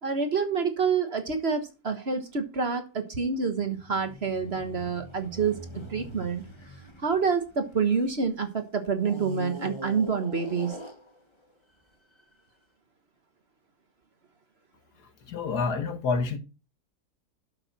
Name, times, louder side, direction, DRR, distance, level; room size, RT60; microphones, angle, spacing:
voice 1, 0.0-5.6 5.9-6.4 7.0-10.8, right 5 dB, 40° right, 1.4 m, -27 dB
sound 1, 3.5-8.3 9.0-11.5 12.2-12.3, equal, 20° left, 1.1 m, -43 dB
voice 2, 15.0-16.4, left 4 dB, 70° left, 1.9 m, -28 dB
11.5 x 6.5 x 4.1 m
omnidirectional pair, 1.8 m